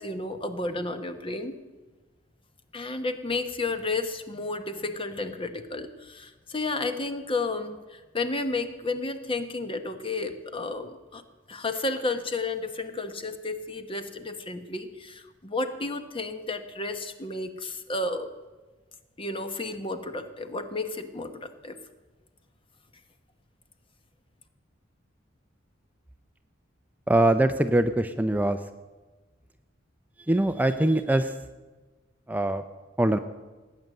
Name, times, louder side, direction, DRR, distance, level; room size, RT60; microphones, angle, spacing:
voice 1, 0.0-1.5 2.7-11.2 11.5-18.3 19.2-21.8, left 3 dB, 30° left, 9 dB, 1.1 m, -32 dB
voice 2, 27.1-28.6 30.3-31.4 32.3-32.6 33.0-33.2, right 1 dB, 10° right, 8 dB, 0.5 m, -23 dB
18.0 x 9.3 x 7.7 m, 1.3 s
head